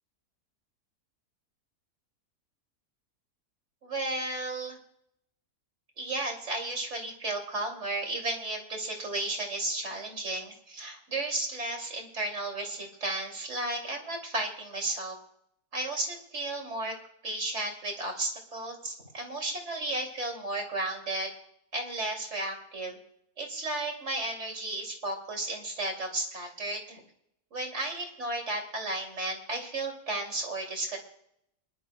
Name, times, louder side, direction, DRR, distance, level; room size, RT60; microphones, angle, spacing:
voice 1, 3.8-4.8 6.0-15.2 15.7-16.9 17.2-21.3 21.7-22.9 23.4-27.0 27.5-31.0, right 2 dB, 45° right, 1 dB, 3.1 m, -33 dB
24.5 x 11.5 x 2.2 m, 0.73 s
omnidirectional pair, 1.6 m